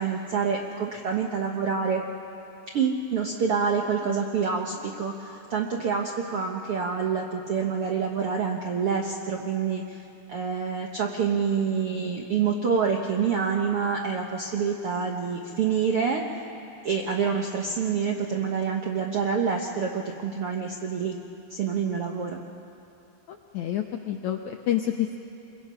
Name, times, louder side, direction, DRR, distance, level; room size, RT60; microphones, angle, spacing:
voice 1, 0.0-2.0 2.7-16.5 16.8-21.2 21.5-22.4, right 6 dB, 70° right, 1 dB, 1.3 m, -27 dB
voice 2, 23.3-25.2, left 11 dB, 80° left, 4 dB, 1.7 m, -28 dB
27.0 x 22.5 x 5.6 m, 2.7 s
omnidirectional pair, 4.2 m